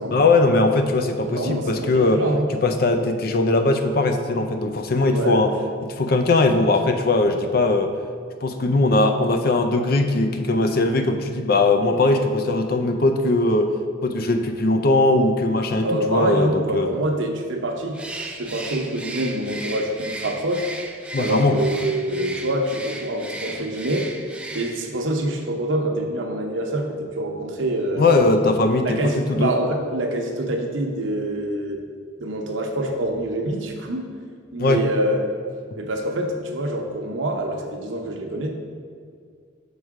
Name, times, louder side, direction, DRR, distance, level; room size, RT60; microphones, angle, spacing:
voice 1, 0.1-2.2 2.6-5.5 6.0-7.9 8.4-13.7 14.0-17.0 21.1-21.6 28.0-29.5 34.6-34.8, left 2 dB, 50° left, 6 dB, 0.5 m, -20 dB
voice 2, 1.3-2.5 5.0-5.7 15.8-18.0 18.3-20.7 21.2-24.1 24.5-28.0 28.8-31.9 32.2-34.1 34.5-35.2 35.8-38.5, right 1 dB, 80° right, 3 dB, 0.8 m, -25 dB
Bird, 17.9-25.0, right 2 dB, 5° right, 0.4 m, -36 dB
6.5 x 4.8 x 4.8 m, 2.2 s
head